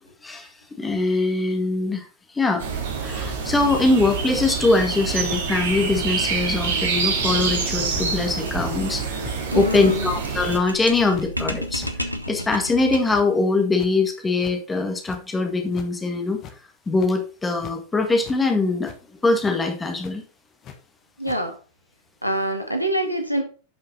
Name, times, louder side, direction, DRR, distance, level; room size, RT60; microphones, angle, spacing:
voice 1, 0.8-2.0 2.3-9.1 9.5-11.8 12.3-16.4 16.9-18.9 19.2-20.2, left 3 dB, 15° left, 4 dB, 1.9 m, -22 dB
sound 1, 2.6-10.6, right 5 dB, 60° right, 2.2 m, -26 dB
sound 2, 5.3-5.6 5.9-6.1 6.6-6.8 7.2-7.4 7.9-8.1 8.4-8.7 9.2-9.4 9.8-10.0 10.4-10.6 11.1-11.3 11.6-11.9 12.4-12.6 13.0-13.5 13.8-13.9 14.4-14.5 15.0-15.2 15.7-15.9 16.3-16.6 16.8-17.2 17.6-17.7 18.2-18.4 18.8-19.0 19.4-19.5 20.0-20.1 20.6-20.8 21.2-21.4, left 9 dB, 35° left, 1.5 m, -40 dB
sound 3, 7.6-13.3, equal, 90° right, 1.0 m, -34 dB
voice 2, 9.5-10.1 21.2-21.6 22.2-23.4, right 1 dB, 90° left, 4 dB, 1.7 m, -25 dB
11.0 x 5.8 x 4.1 m, 0.36 s
figure-of-eight pair, 90°, 0 cm